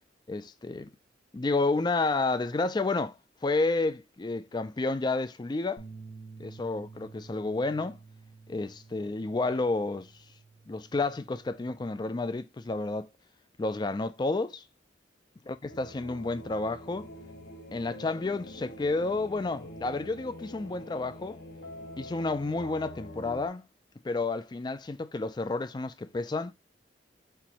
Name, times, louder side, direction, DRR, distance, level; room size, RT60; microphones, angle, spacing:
voice 1, 0.3-0.9 1.3-3.2 3.4-5.8 6.4-8.0 8.5-10.1 10.7-13.1 13.6-14.6 15.5-17.1 17.7-21.4 22.0-23.7 24.0-26.5, left 3 dB, 25° left, 0.4 m, -30 dB
sound 1, 5.8-12.0, right 4 dB, 85° left, 1.4 m, -51 dB
sound 2, 15.7-23.5, left 1 dB, 60° left, 0.9 m, -45 dB
4.5 x 2.6 x 4.2 m
head